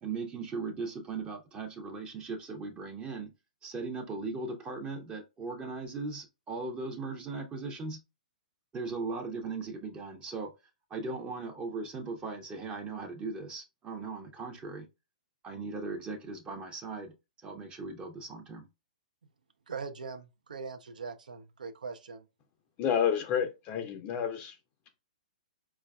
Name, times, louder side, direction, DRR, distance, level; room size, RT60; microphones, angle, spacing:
voice 1, 0.0-3.3 3.6-8.0 8.7-10.5 10.9-14.9 15.4-17.1 17.4-18.6, right 3 dB, 20° right, 0.6 m, -38 dB
voice 2, 19.7-22.2, right 5 dB, 75° right, 0.4 m, -41 dB
voice 3, 22.8-24.6, left 8 dB, 30° left, 0.4 m, -29 dB
4.4 x 2.3 x 2.2 m
figure-of-eight pair, 120°, 4 cm